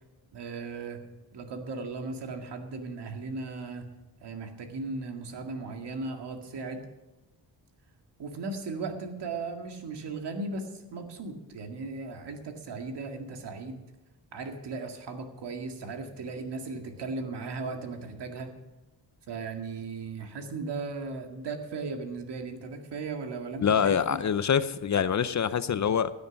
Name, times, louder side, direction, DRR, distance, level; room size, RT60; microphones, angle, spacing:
voice 1, 0.3-1.0 1.3-3.9 4.2-6.9 8.2-13.8 14.3-18.6 19.3-24.0, right 3 dB, 70° right, 4 dB, 2.1 m, -37 dB
voice 2, 23.6-26.1, left 7 dB, 40° left, 14 dB, 0.6 m, -25 dB
16.0 x 9.7 x 5.2 m, 1.1 s
cardioid pair, 110°, 42 cm